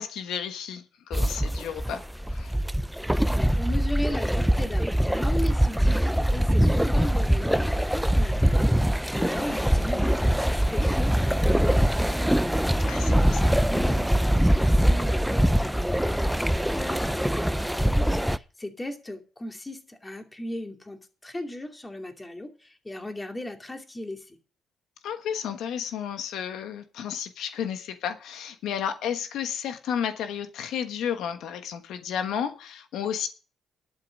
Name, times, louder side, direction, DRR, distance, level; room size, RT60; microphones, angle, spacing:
voice 1, 0.0-2.0 2.3-2.5 12.9-13.6 25.0-33.3, left 8 dB, 80° left, 1.2 m, -32 dB
sound 1, 1.1-18.4, equal, ahead, 0.5 m, -23 dB
voice 2, 3.3-8.8 9.2-12.7 13.4-24.4, left 1 dB, 15° left, 2.5 m, -37 dB
11.5 x 8.4 x 6.4 m
cardioid pair, 90°, 0 cm